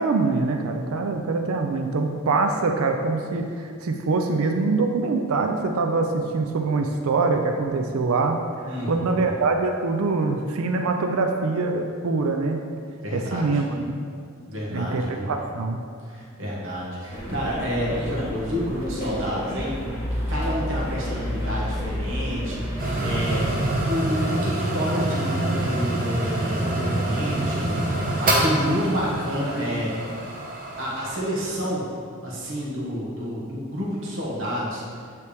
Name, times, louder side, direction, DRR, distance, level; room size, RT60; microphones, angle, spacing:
voice 1, 0.0-8.4 8.9-12.6 13.1-13.9 14.7-15.8, right 3 dB, 80° right, 4 dB, 0.4 m, -24 dB
voice 2, 8.6-9.3 13.0-13.6 14.4-15.3 16.0-19.8 20.3-30.2 30.8-31.9 32.2-34.8, equal, 60° right, -5 dB, 1.4 m, -29 dB
sound 1, 17.1-23.8, equal, 10° right, 1.3 m, -30 dB
sound 2, 22.8-31.2, right 1 dB, 40° right, 0.9 m, -26 dB
9.3 x 3.4 x 3.4 m, 2.2 s
head